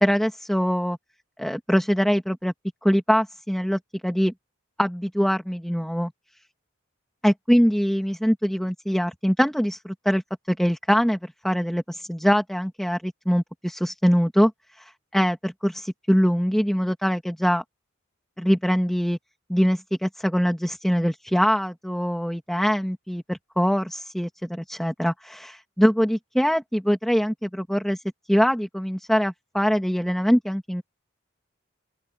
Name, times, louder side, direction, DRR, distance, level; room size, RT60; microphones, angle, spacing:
voice 1, 0.0-1.0 1.4-2.5 2.8-4.3 4.8-6.1 7.2-10.2 10.5-14.5 14.8-17.6 18.4-19.2 19.5-28.0 28.3-30.8, equal, ahead, 1.7 m, -23 dB
open air
head